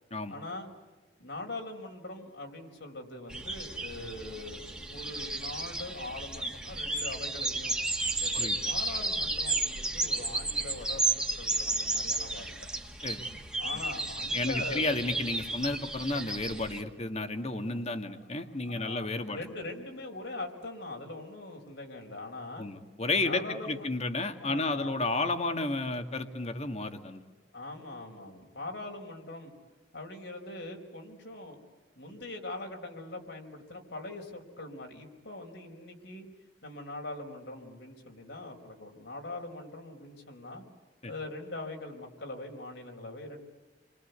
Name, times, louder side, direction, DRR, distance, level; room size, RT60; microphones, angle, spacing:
voice 1, 0.3-0.7 1.2-7.8 8.1-12.7 13.3-15.2 17.6-17.7 18.6-22.7 23.2-23.9 24.4-25.0 27.5-29.5 29.9-31.6 32.0-36.3 36.6-40.6 41.0-43.4, left 2 dB, 75° left, 2 dB, 4.7 m, -42 dB
sound 1, 3.3-16.8, right 2 dB, 5° right, 2.1 m, -33 dB
voice 2, 14.3-19.4 22.6-27.2 41.0-41.1, left 2 dB, 35° left, 7 dB, 1.9 m, -32 dB
30.0 x 24.0 x 8.2 m, 1.3 s
head